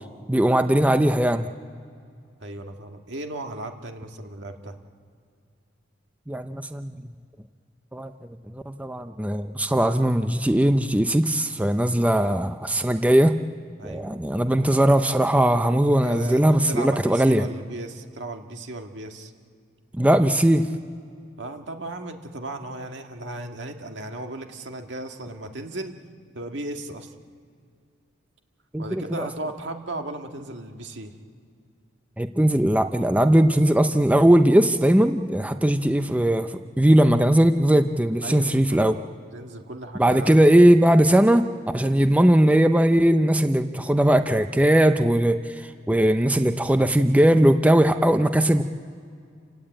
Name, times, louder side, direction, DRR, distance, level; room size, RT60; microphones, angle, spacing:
voice 1, 0.3-1.5 6.3-6.9 7.9-8.1 8.5-13.4 13.8-17.4 20.0-20.7 28.7-29.3 32.2-36.5 36.8-39.0 40.0-41.5 41.7-48.6, right 1 dB, 10° right, 8 dB, 0.6 m, -19 dB
voice 2, 2.4-4.8 12.2-12.4 13.8-14.1 16.0-19.3 21.4-25.9 26.3-27.1 28.8-31.1 38.2-38.9 39.3-40.5, right 2 dB, 70° right, 4 dB, 1.9 m, -36 dB
29.0 x 17.5 x 8.9 m, 2.3 s
head